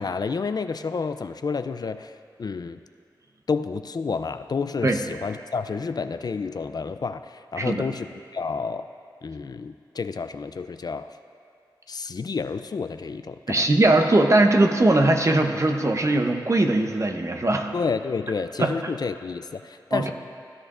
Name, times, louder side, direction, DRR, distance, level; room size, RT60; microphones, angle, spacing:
voice 1, 0.0-2.1 2.4-2.8 3.5-8.9 9.2-11.1 11.9-13.7 17.7-20.1, left 5 dB, 55° left, 10 dB, 0.4 m, -30 dB
voice 2, 13.5-17.7 18.6-18.7 19.9-20.1, right 2 dB, 40° right, 4 dB, 0.8 m, -20 dB
15.5 x 10.5 x 2.5 m, 2.3 s
wide cardioid pair, 60°, 8 cm